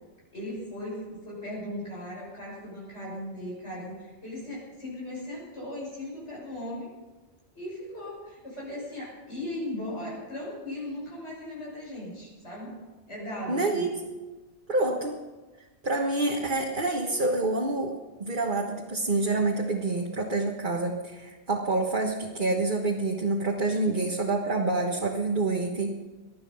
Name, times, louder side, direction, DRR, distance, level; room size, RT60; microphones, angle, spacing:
voice 1, 0.3-6.9 7.6-12.8 13.1-13.9, left 1 dB, 85° left, -5 dB, 6.9 m, -37 dB
voice 2, 13.5-14.0 14.7-15.2 15.8-26.0, right 2 dB, 50° right, -1 dB, 1.6 m, -27 dB
19.5 x 12.5 x 5.5 m, 1.2 s
omnidirectional pair, 1.1 m